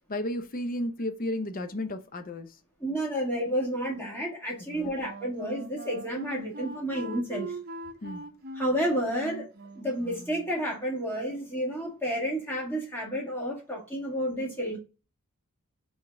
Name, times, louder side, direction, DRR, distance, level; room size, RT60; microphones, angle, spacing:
voice 1, 0.1-2.5 4.7-4.9 8.0-8.2, left 1 dB, 40° left, 0.6 m, -33 dB
voice 2, 2.8-7.5 8.5-9.5 9.7-14.8, equal, 10° left, 1.7 m, -30 dB
Wind instrument woodwind instrument, 4.6-10.5, right 2 dB, 45° right, 0.8 m, -41 dB
3.9 x 3.8 x 3.4 m
head